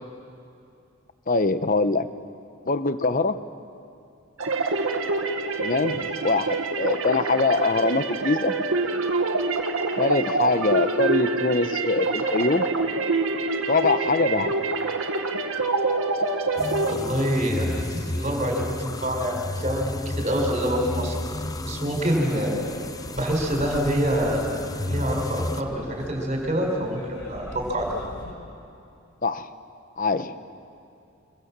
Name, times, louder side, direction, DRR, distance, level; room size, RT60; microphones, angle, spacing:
voice 1, 1.3-2.1 2.7-3.4 5.6-8.5 10.0-12.7 13.7-14.5 29.2-29.5 30.0-30.4, left 3 dB, 40° left, 11 dB, 0.9 m, -23 dB
sound 1, 4.4-16.9, right 3 dB, 75° right, 1.7 m, -26 dB
sound 2, 16.6-25.6, left 1 dB, 15° left, 0.5 m, -32 dB
voice 2, 16.9-21.3 21.6-22.7 23.1-28.0, equal, 35° right, 1 dB, 4.7 m, -26 dB
sound 3, 20.7-28.3, left 1 dB, 90° left, 3.7 m, -42 dB
26.0 x 22.0 x 7.5 m, 2.6 s
head